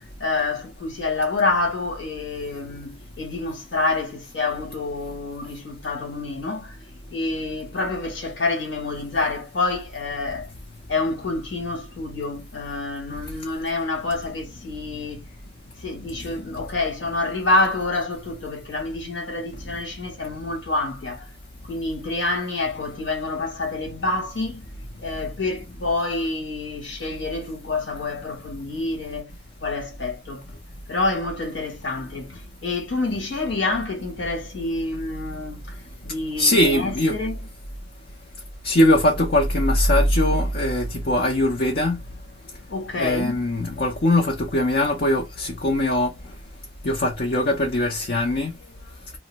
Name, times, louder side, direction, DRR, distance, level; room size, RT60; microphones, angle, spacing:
voice 1, 0.2-6.8 7.1-10.5 10.9-15.2 15.8-21.3 21.6-24.6 25.0-29.3 29.6-30.4 30.9-35.8 36.0-37.4 42.7-43.4, left 2 dB, 75° left, 1.3 m, -27 dB
voice 2, 36.4-37.2 38.6-42.0 42.9-46.1 46.8-48.5, left 1 dB, 50° left, 0.6 m, -21 dB
2.7 x 2.1 x 3.9 m
head